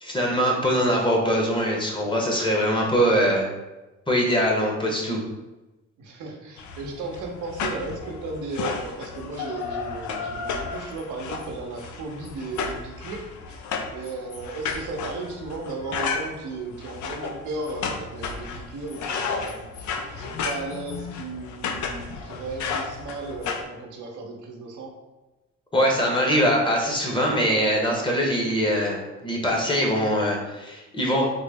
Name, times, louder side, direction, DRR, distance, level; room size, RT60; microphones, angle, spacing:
voice 1, 0.0-3.5 4.1-5.2 25.7-31.3, equal, 15° left, -1 dB, 0.8 m, -22 dB
voice 2, 6.0-13.6 13.9-25.0, right 3 dB, 80° right, 1 dB, 0.7 m, -35 dB
sound 1, 6.6-23.6, left 5 dB, 75° left, 0.5 m, -33 dB
3.7 x 2.0 x 3.4 m, 1.1 s
cardioid pair, 90°, 30 cm